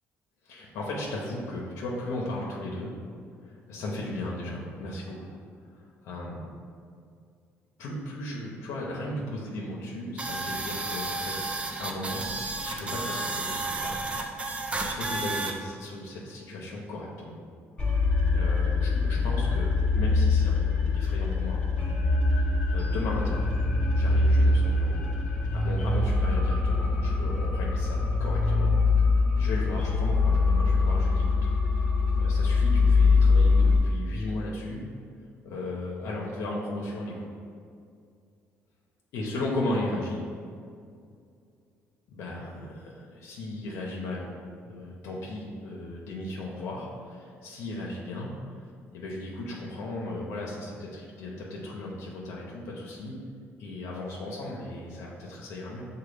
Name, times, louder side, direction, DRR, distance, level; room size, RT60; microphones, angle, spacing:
voice 1, 0.5-2.9 3.4-5.3 6.0-6.5 7.8-11.5 11.8-12.2 12.6-14.0 14.8-17.4 17.9-18.0 18.3-21.6 22.3-23.4 23.9-25.0 25.5-28.8 29.3-31.4 31.7-31.9 32.2-34.8 35.4-37.2 39.1-40.2 42.1-44.3 44.6-48.6 48.9-53.2 53.6-55.9, left 2 dB, 80° left, -3 dB, 0.6 m, -36 dB
sound 1, 10.2-15.5, right 2 dB, 25° right, 0.4 m, -32 dB
sound 2, 17.8-33.8, left 3 dB, 20° left, 0.9 m, -23 dB
6.6 x 2.2 x 3.2 m, 2.3 s
cardioid pair, 100°, 5 cm